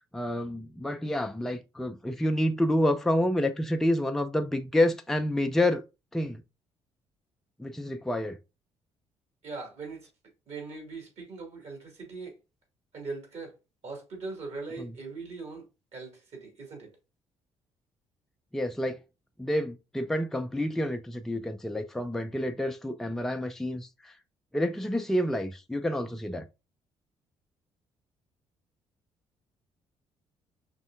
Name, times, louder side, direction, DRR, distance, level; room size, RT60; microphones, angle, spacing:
voice 1, 0.1-5.8 6.1-6.4 7.6-8.4 14.8-14.9 18.5-19.0 19.4-24.1 24.5-26.5, left 1 dB, ahead, 0.5 m, -28 dB
voice 2, 9.4-10.1 10.5-12.4 12.9-13.5 13.8-15.6 15.9-16.9, right 3 dB, 45° right, 2.2 m, -40 dB
5.2 x 3.4 x 2.5 m
figure-of-eight pair, 45°, 15 cm